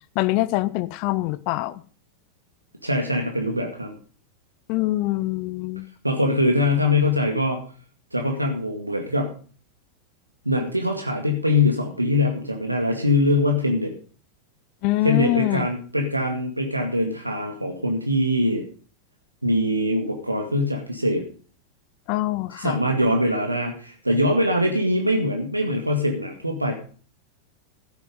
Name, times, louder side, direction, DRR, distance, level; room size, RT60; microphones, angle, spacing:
voice 1, 0.1-1.8 4.7-5.9 14.8-15.7 22.1-22.8, left 18 dB, 45° left, 0.7 m, -24 dB
voice 2, 2.8-3.9 6.0-7.6 8.1-9.3 10.5-13.9 15.0-18.6 19.4-21.2 22.5-26.7, left 1 dB, 85° right, 1.9 m, -23 dB
15.0 x 9.0 x 5.4 m
figure-of-eight pair, 90°, 0 cm